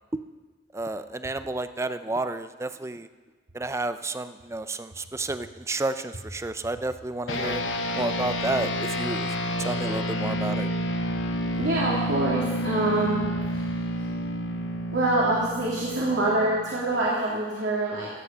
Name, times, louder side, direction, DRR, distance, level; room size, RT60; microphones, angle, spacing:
voice 1, 0.7-3.1 3.5-7.6 8.0-9.3 9.6-10.7, right 2 dB, 15° right, 11 dB, 0.4 m, -31 dB
sound 1, 7.3-17.0, equal, 90° left, 1.0 m, -29 dB
voice 2, 11.6-13.2 13.5-13.7 14.9-18.1, right 2 dB, 70° right, -6 dB, 2.4 m, -25 dB
16.0 x 8.1 x 5.5 m, 1.3 s
head